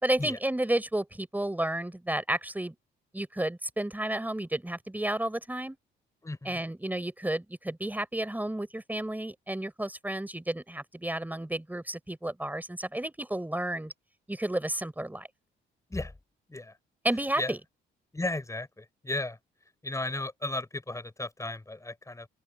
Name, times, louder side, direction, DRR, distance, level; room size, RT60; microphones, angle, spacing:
voice 1, 0.0-2.7 3.1-5.8 6.4-13.9 14.3-15.3 17.0-17.6, right 1 dB, 10° right, 4.5 m, -31 dB
voice 2, 6.2-6.6 15.9-16.1 16.5-16.8 17.4-17.5 18.1-19.4 19.8-22.3, left 2 dB, 15° left, 5.4 m, -35 dB
open air
cardioid pair, 90°, 20 cm